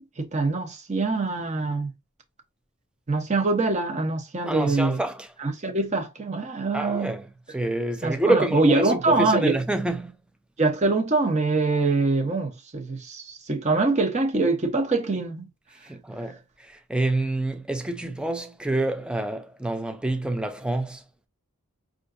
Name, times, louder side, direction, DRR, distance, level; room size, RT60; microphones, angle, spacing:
voice 1, 0.0-1.9 3.1-5.0 5.4-7.1 8.0-9.6 10.6-15.5, right 3 dB, 30° right, 0.7 m, -24 dB
voice 2, 4.5-5.3 6.7-10.1 15.8-16.4 16.7-21.0, right 2 dB, 5° right, 0.3 m, -27 dB
5.5 x 2.5 x 2.5 m
head